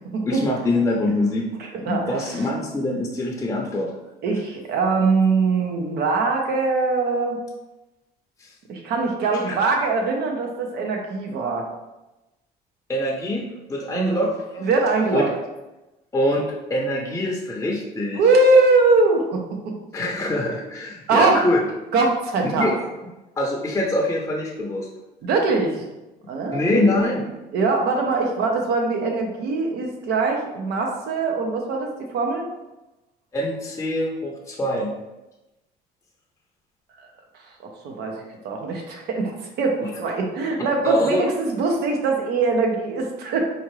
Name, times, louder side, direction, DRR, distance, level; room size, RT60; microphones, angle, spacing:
voice 1, 0.3-1.5 1.8-3.9 8.4-8.5 9.5-9.6 12.9-13.4 13.7-14.7 15.1-15.2 16.1-16.4 16.7-18.2 19.9-21.6 22.6-22.8 23.4-24.9 26.5-27.2 33.3-34.9 39.8-39.9 40.8-41.3, left 1 dB, 15° left, -2 dB, 0.6 m, -24 dB
voice 2, 1.6-2.5 4.2-7.4 8.7-11.6 13.9-14.2 14.6-15.3 18.1-19.7 21.1-21.4 21.9-22.7 25.2-25.8 26.3-26.9 27.5-32.5 37.8-43.4, right 3 dB, 75° right, 2 dB, 0.8 m, -22 dB
4.3 x 2.4 x 3.1 m, 1.0 s
cardioid pair, 110°, 17 cm